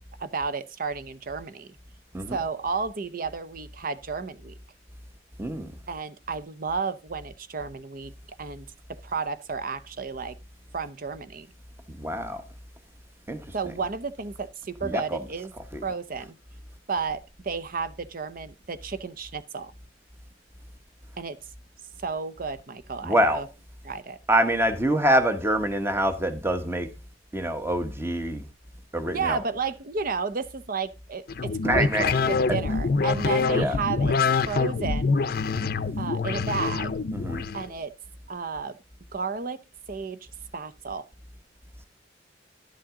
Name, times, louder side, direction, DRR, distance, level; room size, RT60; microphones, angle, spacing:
voice 1, 0.2-1.7 2.3-4.5 5.9-8.1 8.4-8.7 9.0-10.3 10.7-11.5 13.5-15.5 15.8-16.4 16.9-19.7 21.2-21.4 22.0-23.5 23.8-24.2 29.1-34.1 34.5-35.2 36.0-36.9 37.5-37.9 38.3-38.8 39.1-39.6 39.9-40.2 40.5-41.1, right 5 dB, 50° right, 0.7 m, -32 dB
voice 2, 5.4-5.7 12.0-12.4 13.3-13.4 14.8-15.2 15.7-15.8 23.0-23.4 24.3-26.9 27.3-28.4 28.9-29.4 31.6-32.1 32.5-32.6 33.5-33.8 37.1-37.5, right 1 dB, 15° right, 1.0 m, -25 dB
sound 1, 31.3-37.6, left 4 dB, 55° left, 0.6 m, -25 dB
11.5 x 7.4 x 3.7 m
head